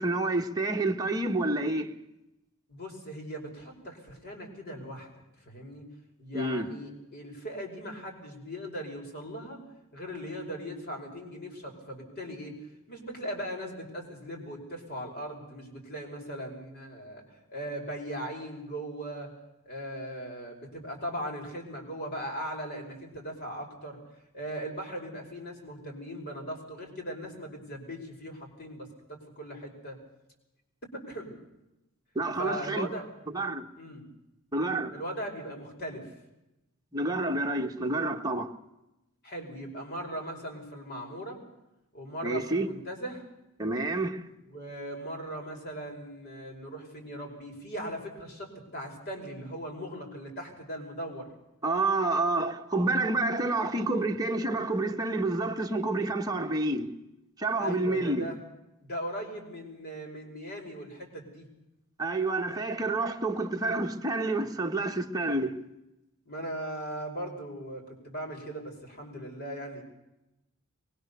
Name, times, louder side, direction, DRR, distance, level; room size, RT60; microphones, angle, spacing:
voice 1, 0.0-1.9 6.3-6.7 32.1-32.9 33.3-33.7 34.5-34.9 36.9-38.5 42.2-42.7 43.6-44.3 51.6-56.9 57.4-58.3 62.0-65.6, right 2 dB, 15° right, 1.4 m, -29 dB
voice 2, 2.7-5.1 5.4-5.8 6.2-9.6 9.9-12.5 12.9-19.3 19.7-24.0 24.3-30.0 30.9-31.3 32.4-33.1 33.8-34.1 34.9-36.1 39.2-41.4 41.9-43.3 44.5-51.3 57.6-58.4 58.8-61.5 66.3-69.8, equal, 45° left, 5.3 m, -39 dB
23.0 x 21.0 x 6.9 m
head